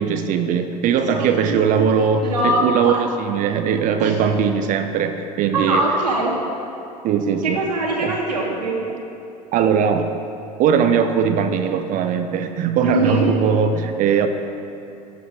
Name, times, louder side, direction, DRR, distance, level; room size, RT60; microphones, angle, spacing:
voice 1, 0.0-5.9 7.0-7.6 8.0-8.2 9.5-10.1 10.6-14.3, right 7 dB, 40° right, 8 dB, 0.9 m, -20 dB
voice 2, 0.8-2.9 4.0-4.2 5.5-6.3 7.4-8.8 12.8-13.3, right 2 dB, 75° right, -4 dB, 2.9 m, -22 dB
15.0 x 10.5 x 4.8 m, 2.7 s
figure-of-eight pair, 75°, 21 cm